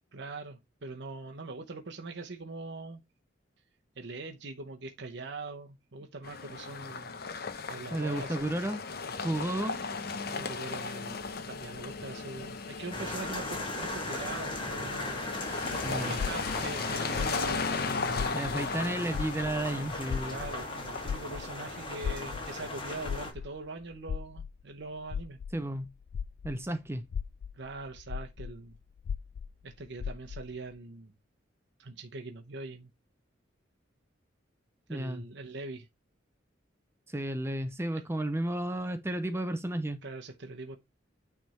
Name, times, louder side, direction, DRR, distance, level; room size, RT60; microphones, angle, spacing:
voice 1, 0.1-3.0 4.0-7.2 7.7-8.4 10.3-15.2 15.7-17.7 20.2-25.4 27.5-28.8 29.6-31.1 31.8-32.9 34.9-35.9 37.9-38.0 40.0-40.8, right 3 dB, 65° right, 0.9 m, -42 dB
sound 1, 6.2-23.2, left 4 dB, 55° left, 0.9 m, -37 dB
voice 2, 7.9-8.8 9.2-9.8 15.8-16.2 18.3-20.5 25.5-25.9 26.4-27.1 34.9-35.2 37.1-40.0, right 1 dB, 15° right, 0.6 m, -32 dB
sound 2, 12.9-23.3, left 2 dB, 30° left, 1.9 m, -38 dB
sound 3, 16.2-18.8 19.1-26.7 27.0-30.6, left 7 dB, 80° left, 0.3 m, -38 dB
9.2 x 3.5 x 4.2 m
head